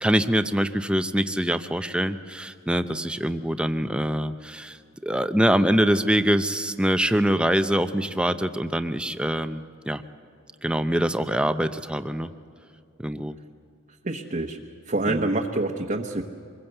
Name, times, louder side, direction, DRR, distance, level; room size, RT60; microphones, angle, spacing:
voice 1, 0.0-4.8 5.0-10.0 10.6-12.3 13.0-13.4 15.1-15.3, equal, 5° right, 9 dB, 0.6 m, -24 dB
voice 2, 14.0-14.6 14.9-16.2, right 2 dB, 35° right, 0 dB, 1.1 m, -26 dB
25.0 x 21.5 x 7.9 m, 2.4 s
head